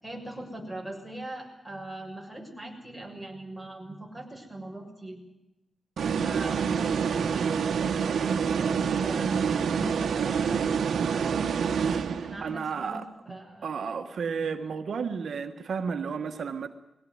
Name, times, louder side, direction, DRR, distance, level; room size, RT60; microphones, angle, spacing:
voice 1, 0.0-5.2 6.0-8.3 8.5-10.7 11.1-13.7, right 1 dB, ahead, 0 dB, 6.8 m, -40 dB
sound 1, 6.0-12.6, right 6 dB, 90° right, 1.3 m, -27 dB
voice 2, 12.4-13.4 13.6-16.7, right 6 dB, 75° right, 6 dB, 1.5 m, -32 dB
21.5 x 17.5 x 9.7 m, 0.97 s
wide cardioid pair, 105°, 0 cm